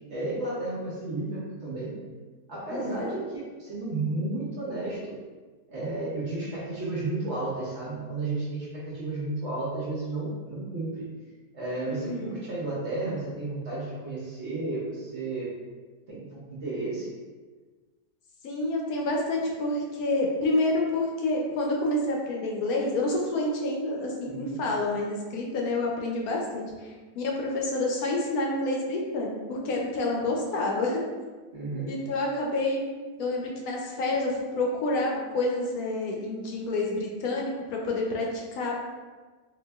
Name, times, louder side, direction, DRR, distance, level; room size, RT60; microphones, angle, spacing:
voice 1, 0.1-1.9 2.5-5.2 5.7-11.0 11.5-15.5 16.1-17.1 24.3-24.6 31.5-31.9, right 2 dB, 55° right, -6 dB, 0.9 m, -32 dB
voice 2, 2.7-3.2 11.9-12.4 18.4-31.0 31.9-32.8 33.2-38.8, left 2 dB, 75° left, -1 dB, 1.0 m, -28 dB
4.0 x 2.5 x 2.2 m, 1.4 s
omnidirectional pair, 1.7 m